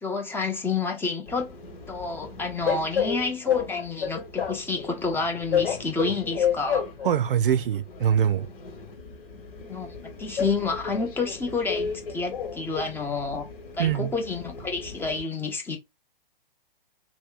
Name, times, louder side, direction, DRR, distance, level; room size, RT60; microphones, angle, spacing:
voice 1, 0.0-1.6 1.9-6.9 9.6-9.9 10.2-13.5 13.8-15.8, left 4 dB, 10° left, 0.6 m, -29 dB
Train, 1.3-15.2, left 7 dB, 65° left, 1.4 m, -32 dB
voice 2, 7.0-8.5 13.8-14.1, right 9 dB, 65° right, 0.5 m, -23 dB
3.0 x 2.2 x 3.7 m
figure-of-eight pair, 120°, 29 cm